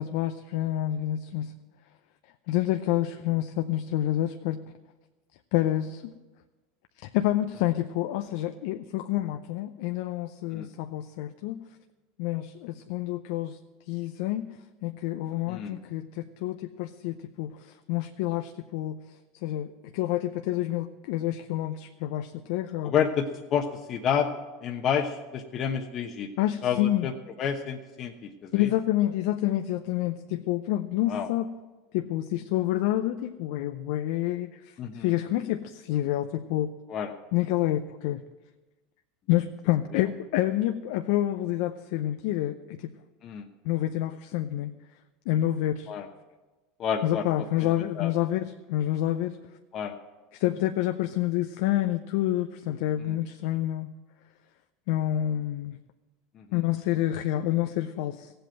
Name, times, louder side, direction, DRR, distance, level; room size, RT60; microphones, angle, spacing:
voice 1, 0.0-1.5 2.5-4.6 5.5-6.1 7.0-11.6 12.2-13.6 13.9-14.5 14.8-19.0 19.4-22.9 26.4-27.1 28.5-31.5 31.9-36.7 37.3-38.2 39.3-42.9 43.6-44.7 45.3-45.9 47.0-49.4 50.3-53.9 54.9-55.8 56.5-58.3, left 13 dB, 70° left, 8 dB, 0.6 m, -28 dB
voice 2, 22.8-24.3 24.6-26.3 26.6-27.1 27.4-28.7 31.1-31.3 34.8-35.1 36.9-37.1 39.9-40.0 43.2-43.5 45.9-46.1 46.8-47.3 47.6-47.7 48.0-48.1 49.7-49.9 53.0-53.1 56.3-56.6, left 8 dB, 45° left, 3 dB, 1.0 m, -29 dB
16.0 x 7.9 x 7.8 m, 1.2 s
hypercardioid pair, 95°, 0 cm